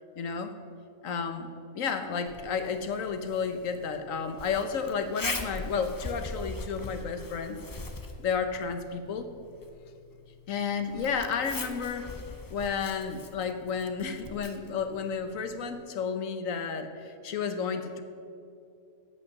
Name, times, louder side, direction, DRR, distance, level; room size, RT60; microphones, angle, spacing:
voice 1, 0.2-0.5 1.0-1.5 1.7-7.6 8.2-9.3 10.5-12.1 12.5-18.0, left 6 dB, 70° left, 8 dB, 1.2 m, -32 dB
Zipper (clothing), 2.3-15.8, left 3 dB, 30° left, 0.4 m, -42 dB
17.0 x 5.8 x 6.5 m, 2.6 s
omnidirectional pair, 1.5 m